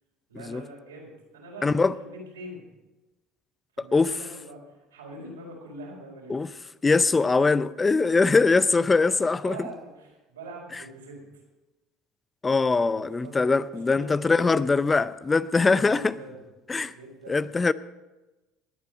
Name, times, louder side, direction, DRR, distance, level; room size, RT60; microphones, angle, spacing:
voice 1, 0.3-2.6 3.8-6.5 7.4-7.5 9.0-11.3 12.8-14.8 15.7-16.4 16.9-17.4, right 2 dB, 90° right, 4.3 m, -43 dB
voice 2, 1.6-1.9 3.8-4.1 6.3-6.5 6.8-9.7 12.4-16.1 16.7-16.9 17.3-17.7, left 4 dB, 20° left, 0.5 m, -22 dB
20.5 x 8.2 x 5.0 m
hypercardioid pair, 70°, 0 cm